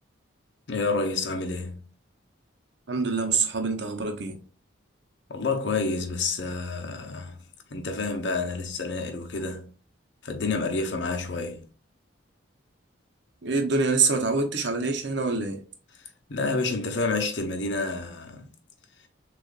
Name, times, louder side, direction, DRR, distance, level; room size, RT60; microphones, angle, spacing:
voice 1, 0.7-1.9 5.3-7.4 7.7-9.7 10.2-11.7 16.3-18.5, left 3 dB, 65° left, 0.8 m, -29 dB
voice 2, 2.9-4.4 13.4-15.6, right 4 dB, 60° right, 0.8 m, -25 dB
6.5 x 2.5 x 2.4 m
head